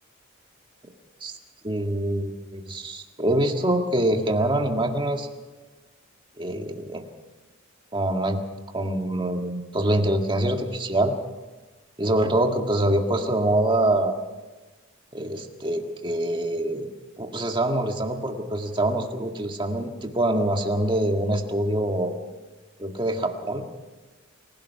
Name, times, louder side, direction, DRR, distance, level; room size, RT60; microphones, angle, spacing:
voice 1, 1.6-5.3 6.4-7.1 7.9-8.4 8.7-11.1 12.0-14.2 15.1-16.9 17.2-22.2 22.8-23.7, right 1 dB, 25° right, 4 dB, 1.8 m, -25 dB
28.0 x 16.5 x 5.7 m, 1.2 s
head